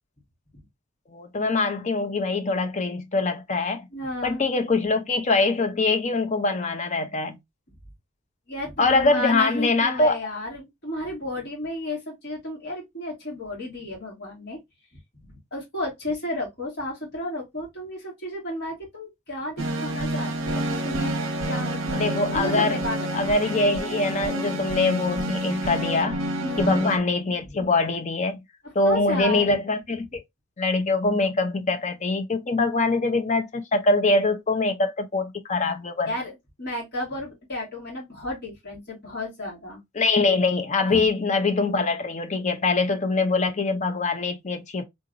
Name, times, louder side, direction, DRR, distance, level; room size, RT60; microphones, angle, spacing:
voice 1, 1.1-3.9 4.2-7.4 8.8-10.2 21.9-22.8 23.1-26.2 26.6-28.4 28.7-30.2 30.6-36.2 40.0-44.8, left 3 dB, 30° left, 0.5 m, -23 dB
voice 2, 3.9-4.4 8.5-14.6 14.9-21.2 21.5-22.0 22.3-23.6 26.4-26.9 28.6-29.5 36.0-39.8 40.9-41.0, left 1 dB, 45° left, 2.3 m, -33 dB
sound 1, 19.6-27.0, right 1 dB, 60° right, 0.7 m, -29 dB
3.7 x 2.9 x 2.5 m
head